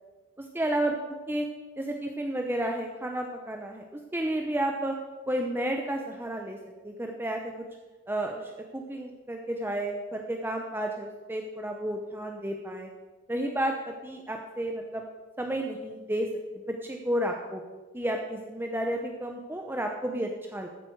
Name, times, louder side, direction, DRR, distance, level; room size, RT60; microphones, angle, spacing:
voice 1, 0.5-1.0 1.3-1.4 1.8-4.9 5.3-6.6 6.8-7.6 8.1-12.9 13.3-15.0 15.4-16.3 16.7-17.6 17.9-20.7, right 1 dB, 10° right, 2 dB, 0.8 m, -31 dB
14.0 x 9.4 x 4.7 m, 1.2 s
head